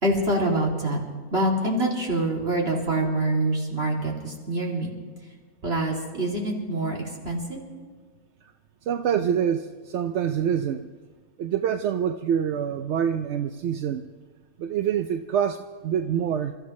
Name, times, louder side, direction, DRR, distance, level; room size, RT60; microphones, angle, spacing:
voice 1, 0.0-1.0 1.3-4.9 5.6-7.6 9.1-9.2, right 1 dB, 45° right, -2 dB, 3.1 m, -25 dB
voice 2, 8.9-10.9 11.4-14.0 14.6-16.5, right 8 dB, 65° right, 8 dB, 0.7 m, -26 dB
29.0 x 14.0 x 3.2 m, 1.5 s
omnidirectional pair, 1.6 m